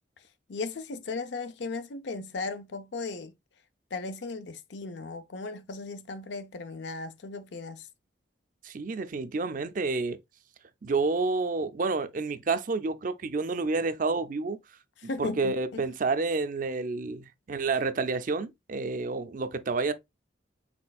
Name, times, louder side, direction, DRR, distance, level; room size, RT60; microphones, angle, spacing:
voice 1, 0.5-3.3 3.9-7.9 15.0-15.8, left 3 dB, 70° left, 0.5 m, -36 dB
voice 2, 8.6-10.2 10.8-14.6 15.2-19.9, right 3 dB, 45° right, 0.5 m, -29 dB
4.3 x 4.3 x 2.3 m
head